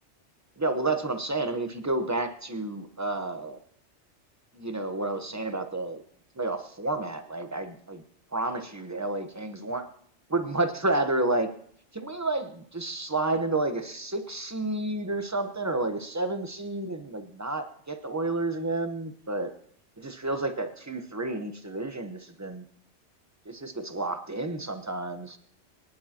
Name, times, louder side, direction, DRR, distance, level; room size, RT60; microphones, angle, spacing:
voice 1, 0.6-3.6 4.5-6.0 6.4-8.0 8.3-9.8 10.3-11.5 11.9-19.5 20.0-22.6 23.5-25.4, right 2 dB, 15° right, 7 dB, 0.9 m, -30 dB
23.5 x 10.5 x 2.9 m, 0.63 s
omnidirectional pair, 1.2 m